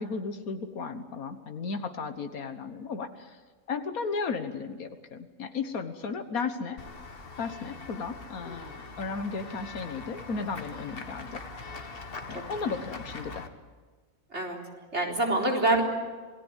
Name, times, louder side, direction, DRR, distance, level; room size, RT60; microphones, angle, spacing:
voice 1, 0.0-3.3 3.7-6.8 7.4-8.7 9.0-11.4 12.3-13.4, left 4 dB, 90° left, 7 dB, 1.8 m, -34 dB
Run / Walk footsteps / Bell, 6.8-13.5, left 3 dB, 40° left, 1.7 m, -42 dB
voice 2, 14.9-15.8, right 2 dB, 50° right, 0 dB, 4.4 m, -26 dB
27.5 x 19.5 x 8.3 m, 1.4 s
omnidirectional pair, 1.5 m